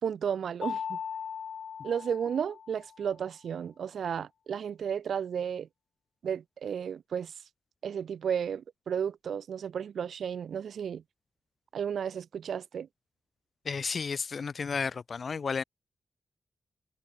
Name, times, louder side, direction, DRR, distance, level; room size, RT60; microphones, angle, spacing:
voice 1, 0.0-1.0 1.8-5.7 6.2-7.3 7.8-11.0 11.7-12.9, right 8 dB, 90° right, 5.0 m, -33 dB
Mallet percussion, 0.6-3.1, left 7 dB, 80° left, 1.8 m, -38 dB
voice 2, 13.7-15.6, left 5 dB, 55° left, 2.0 m, -32 dB
wide cardioid pair, 110°, 0 cm